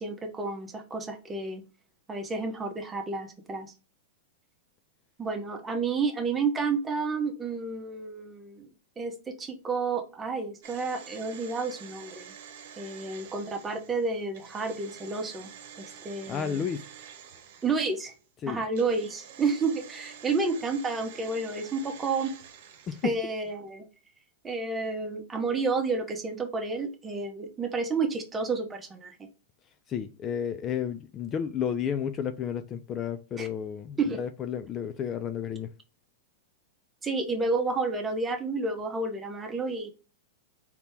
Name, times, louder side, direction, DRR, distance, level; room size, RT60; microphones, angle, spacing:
voice 1, 0.0-1.6 2.1-3.7 5.2-8.7 9.0-12.3 12.8-15.5 15.8-16.6 17.6-18.1 18.5-22.3 23.0-23.8 24.4-29.2 33.4-33.5 34.0-34.2 37.0-39.9, right 4 dB, 15° right, 1.0 m, -30 dB
sound 1, 10.6-18.2 18.7-23.4 23.7-23.8, right 8 dB, 60° right, 1.0 m, -48 dB
voice 2, 16.3-16.9 18.4-18.6 22.9-23.1 29.9-35.7, left 8 dB, 30° left, 0.4 m, -32 dB
4.1 x 2.8 x 3.4 m
hypercardioid pair, 120°, 0 cm